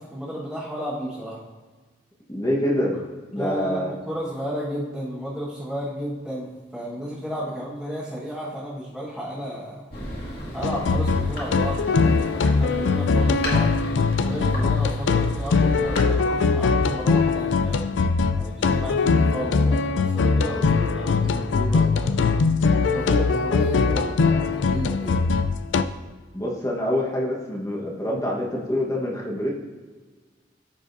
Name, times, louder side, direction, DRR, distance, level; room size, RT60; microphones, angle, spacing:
voice 1, 0.0-1.4 3.3-9.8 10.5-13.7 14.2-17.8 18.3-22.3 22.7-25.2, equal, ahead, -10 dB, 1.4 m, -32 dB
voice 2, 2.3-3.0 3.3-3.9 26.3-29.5, left 1 dB, 20° left, -2 dB, 1.3 m, -26 dB
Thunder, 9.9-18.2, left 1 dB, 55° left, 2.0 m, -36 dB
sound 1, 10.6-25.8, left 4 dB, 85° left, 0.4 m, -21 dB
14.5 x 4.9 x 2.7 m, 1.4 s
head